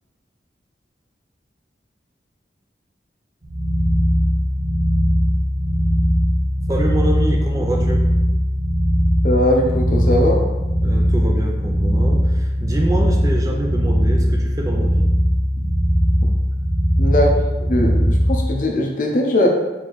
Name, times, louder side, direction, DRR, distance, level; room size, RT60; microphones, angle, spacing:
sound 1, 3.4-18.4, equal, 50° right, 0.9 m, -19 dB
voice 1, 6.7-8.1 10.8-15.1, right 1 dB, 20° right, 0 dB, 0.4 m, -26 dB
voice 2, 9.2-10.4 15.5-15.6 17.0-17.4 17.7-19.5, left 1 dB, 45° left, 0 dB, 0.7 m, -19 dB
4.7 x 2.8 x 4.0 m, 1.1 s
head